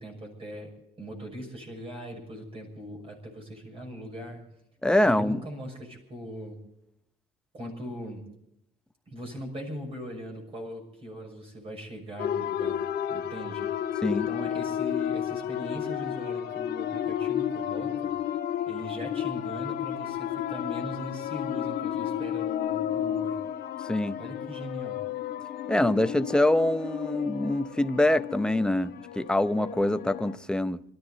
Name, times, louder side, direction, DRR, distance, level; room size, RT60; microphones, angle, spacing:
voice 1, 0.0-4.5 5.0-6.6 7.5-8.2 9.1-13.7 14.1-18.1 18.7-23.4 24.2-25.0, equal, 35° right, 6.4 m, -40 dB
voice 2, 4.8-5.4 14.0-14.3 23.9-24.2 25.7-30.8, left 1 dB, 5° left, 0.7 m, -25 dB
sound 1, 12.2-30.4, left 10 dB, 70° left, 1.9 m, -32 dB
26.0 x 13.0 x 4.2 m
cardioid pair, 110°, 17 cm